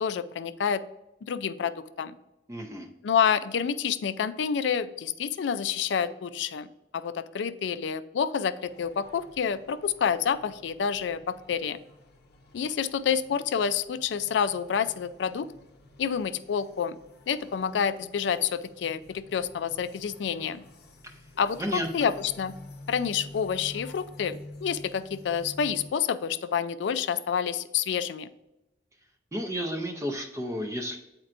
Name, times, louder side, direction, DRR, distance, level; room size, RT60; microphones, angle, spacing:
voice 1, 0.0-0.8 1.3-2.1 3.0-6.7 6.9-11.8 12.5-15.5 16.0-17.0 17.3-20.6 21.4-22.5 22.9-28.3, left 7 dB, 75° left, 13 dB, 0.4 m, -28 dB
voice 2, 2.5-2.9 21.0-21.2 21.6-22.1 29.3-31.0, equal, 15° right, 3 dB, 0.5 m, -32 dB
sound 1, 8.6-25.9, left 1 dB, 60° left, 0.7 m, -50 dB
8.6 x 4.4 x 2.5 m, 0.93 s
head